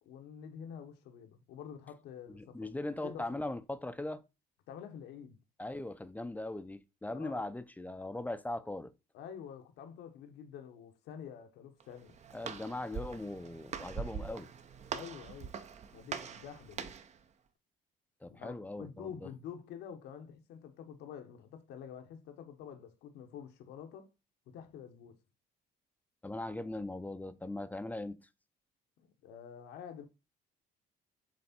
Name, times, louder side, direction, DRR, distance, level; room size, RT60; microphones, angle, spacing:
voice 1, 0.0-2.7 3.0-3.4 4.7-5.4 7.1-7.5 9.1-12.2 14.9-15.5 15.9-16.9 18.3-24.1 24.5-25.2 29.0-30.0, left 8 dB, 85° left, 1.1 m, -48 dB
voice 2, 2.3-4.2 5.6-8.9 12.3-14.5 18.2-19.3 26.2-28.3, left 2 dB, 10° left, 0.5 m, -40 dB
Walk footsteps, 11.8-17.2, right 6 dB, 40° right, 0.7 m, -43 dB
7.4 x 3.4 x 4.3 m
cardioid pair, 110°, 17 cm